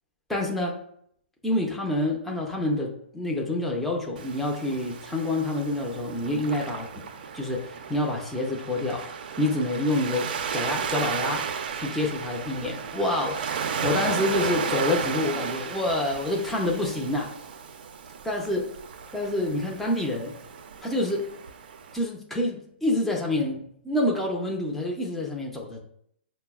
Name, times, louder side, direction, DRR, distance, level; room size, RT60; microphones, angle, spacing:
voice 1, 0.3-0.8 1.4-6.9 7.3-9.1 9.4-11.5 11.7-17.3 18.2-18.6 19.1-20.3 20.8-21.3 21.9-25.8, left 1 dB, 5° left, -2 dB, 0.5 m, -27 dB
Waves surf, 4.2-22.0, right 6 dB, 50° right, 0.4 m, -34 dB
5.3 x 2.0 x 2.3 m, 0.68 s
hypercardioid pair, 135°, 6 cm